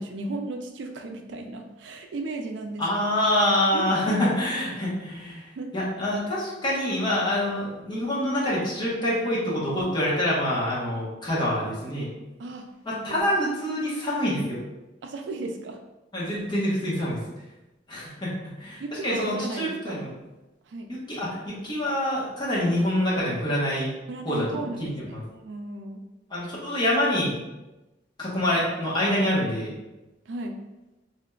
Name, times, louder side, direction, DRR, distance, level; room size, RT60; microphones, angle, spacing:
voice 1, 0.0-2.8 3.7-4.3 5.6-5.7 12.4-13.2 15.0-15.8 18.8-20.0 20.7-20.9 24.1-26.0 30.3-30.6, right 2 dB, 80° right, 4 dB, 0.4 m, -35 dB
voice 2, 2.8-12.1 12.8-14.6 16.1-17.2 17.9-20.1 20.9-23.9 24.2-25.2 26.3-27.4 28.2-29.7, left 1 dB, 25° left, -7 dB, 0.9 m, -26 dB
3.4 x 2.8 x 2.2 m, 1.0 s
head